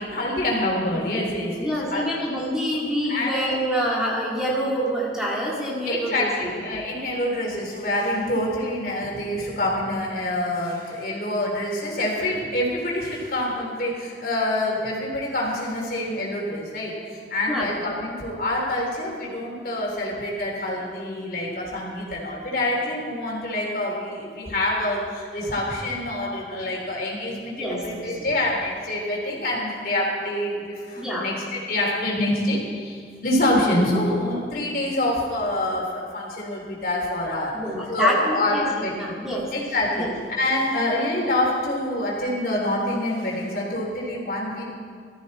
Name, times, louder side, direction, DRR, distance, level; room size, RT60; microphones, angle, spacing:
voice 1, 0.0-2.1 3.1-3.3 5.9-37.5 37.9-38.9 39.5-40.1 40.4-44.6, left 1 dB, 55° left, -3 dB, 3.5 m, -26 dB
voice 2, 1.6-6.5 17.5-17.7 27.6-28.1 31.0-31.2 37.5-39.5 39.9-40.1, equal, 5° right, -5 dB, 2.2 m, -26 dB
19.5 x 14.0 x 4.3 m, 2.1 s
head